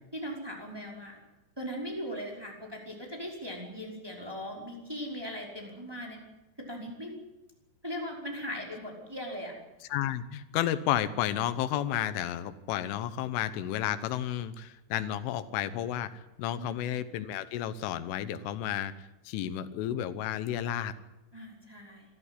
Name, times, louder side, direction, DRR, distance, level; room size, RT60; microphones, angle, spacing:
voice 1, 0.1-1.2 1.6-6.2 6.6-7.2 7.8-9.5 16.6-16.9 21.3-22.0, equal, 5° right, 0 dB, 4.6 m, -39 dB
voice 2, 9.9-18.9 19.3-20.9, left 11 dB, 90° left, 13 dB, 3.6 m, -32 dB
26.0 x 14.0 x 10.0 m, 0.99 s
omnidirectional pair, 5.5 m